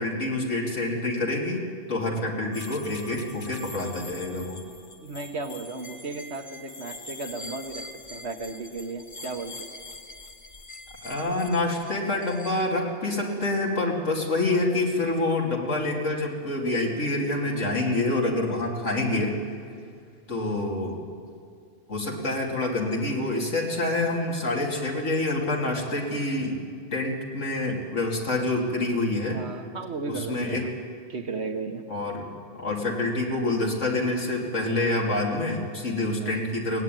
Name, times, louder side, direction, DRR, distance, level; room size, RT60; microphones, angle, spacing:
voice 1, 0.0-4.6 11.0-19.4 20.3-21.0 21.9-26.6 26.9-29.4 30.1-30.7 31.9-32.3 32.6-36.8, left 2 dB, 85° left, -1 dB, 3.3 m, -27 dB
sound 1, 2.5-12.6, left 2 dB, 45° left, 1.4 m, -43 dB
voice 2, 5.0-9.7 29.3-30.7 31.1-31.8 36.2-36.5, right 3 dB, 65° right, 5 dB, 1.8 m, -35 dB
22.5 x 18.0 x 9.2 m, 2.2 s
omnidirectional pair, 1.2 m